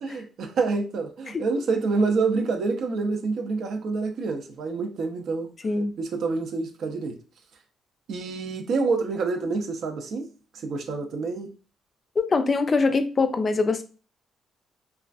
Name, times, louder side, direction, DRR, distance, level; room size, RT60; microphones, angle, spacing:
voice 1, 0.0-5.5 6.0-7.2 8.1-10.3 10.6-11.5, right 4 dB, 70° right, 0.5 m, -27 dB
voice 2, 5.6-5.9 12.2-13.8, left 4 dB, 40° left, 0.3 m, -23 dB
2.4 x 2.3 x 2.3 m
cardioid pair, 90°, 0 cm